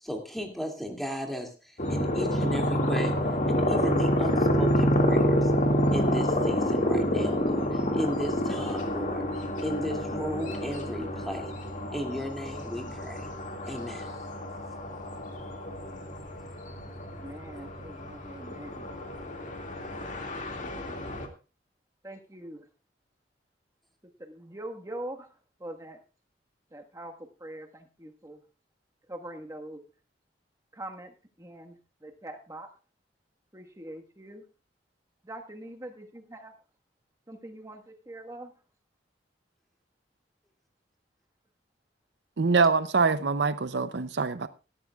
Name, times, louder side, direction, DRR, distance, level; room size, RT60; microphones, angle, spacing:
voice 1, 0.0-3.2 3.4-5.5 5.9-9.2 9.6-11.5 11.9-13.3 13.7-14.1, equal, ahead, 2.5 m, -35 dB
sound 1, 1.8-21.3, equal, 45° left, 2.2 m, -28 dB
voice 2, 17.0-18.9 20.5-21.1 22.0-22.6 24.2-25.3 25.6-26.0 26.7-27.1 27.4-28.4 29.1-29.8 30.7-31.1 31.4-32.7 33.5-34.4 35.2-36.5 37.3-38.5, right 1 dB, 20° right, 1.5 m, -43 dB
voice 3, 42.4-44.5, right 4 dB, 70° right, 0.6 m, -24 dB
18.0 x 13.5 x 2.4 m
head